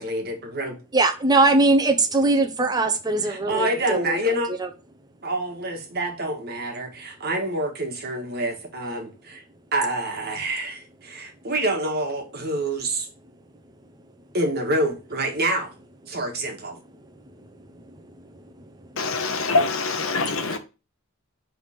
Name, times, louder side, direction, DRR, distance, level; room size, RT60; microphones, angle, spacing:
voice 1, 0.0-0.8 3.2-4.5 5.2-9.4 9.7-13.1 14.3-15.7 16.1-16.8, right 1 dB, 45° right, 1.4 m, -27 dB
voice 2, 0.9-4.2, right 2 dB, 20° right, 0.6 m, -20 dB
voice 3, 19.0-20.6, left 3 dB, 65° left, 0.9 m, -24 dB
4.9 x 3.5 x 5.6 m
head